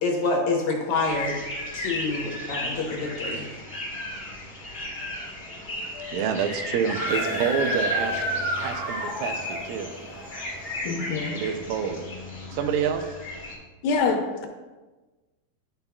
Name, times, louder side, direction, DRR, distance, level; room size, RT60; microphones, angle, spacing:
voice 1, 0.0-1.4 1.7-3.4, left 3 dB, 65° left, -1 dB, 2.1 m, -27 dB
sound 1, 1.0-13.5, left 2 dB, 30° left, 1.1 m, -35 dB
voice 2, 6.1-9.9 11.3-12.1 12.5-13.2, right 7 dB, 85° right, 7 dB, 2.3 m, -28 dB
Screaming, 6.8-9.6, equal, 40° right, 2.3 m, -30 dB
sound 2, 7.1-11.5, right 2 dB, 65° right, 1.8 m, -39 dB
voice 3, 10.8-11.4 13.8-14.5, left 4 dB, 85° left, 3 dB, 2.6 m, -26 dB
10.5 x 5.6 x 2.3 m, 1.2 s
omnidirectional pair, 4.0 m